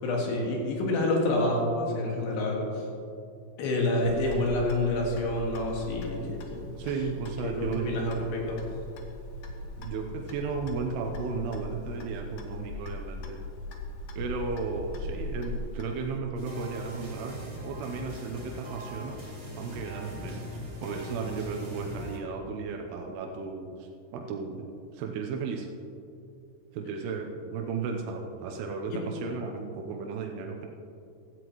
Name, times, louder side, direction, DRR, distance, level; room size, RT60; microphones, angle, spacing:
voice 1, 0.0-2.8 3.6-6.6 7.4-8.7 28.9-29.0, left 1 dB, 90° left, -1 dB, 4.0 m, -28 dB
Clock, 4.0-16.2, left 1 dB, 70° left, 2.6 m, -40 dB
voice 2, 6.8-7.9 9.8-13.4 14.2-19.2 19.6-25.7 26.7-30.7, right 5 dB, 85° right, 2 dB, 2.9 m, -34 dB
sound 1, 16.3-22.2, left 1 dB, 15° right, 2.0 m, -41 dB
16.0 x 13.0 x 3.1 m, 2.6 s
omnidirectional pair, 4.7 m